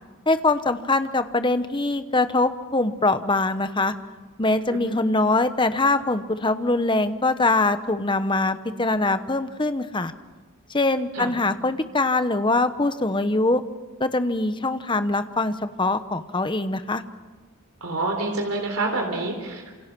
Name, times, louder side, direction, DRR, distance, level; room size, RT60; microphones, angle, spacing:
voice 1, 0.3-3.9 4.4-10.1 10.7-13.6 14.0-17.0, left 2 dB, 20° left, 10 dB, 1.0 m, -23 dB
voice 2, 17.8-19.7, right 2 dB, 80° right, 3 dB, 3.6 m, -27 dB
28.5 x 27.5 x 6.1 m, 1.3 s
head